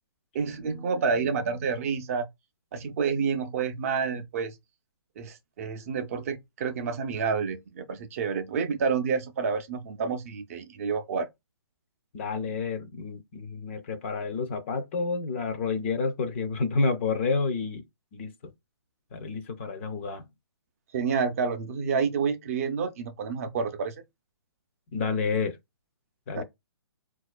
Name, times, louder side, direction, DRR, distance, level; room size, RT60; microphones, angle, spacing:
voice 1, 0.3-2.3 2.7-4.5 5.2-11.3 20.9-23.9 26.3-26.4, right 5 dB, 35° right, 0.4 m, -29 dB
voice 2, 12.1-17.8 18.1-18.3 19.1-20.2 24.9-25.6 26.3-26.4, left 4 dB, 30° left, 0.4 m, -29 dB
4.2 x 2.3 x 2.3 m
hypercardioid pair, 150°, 14 cm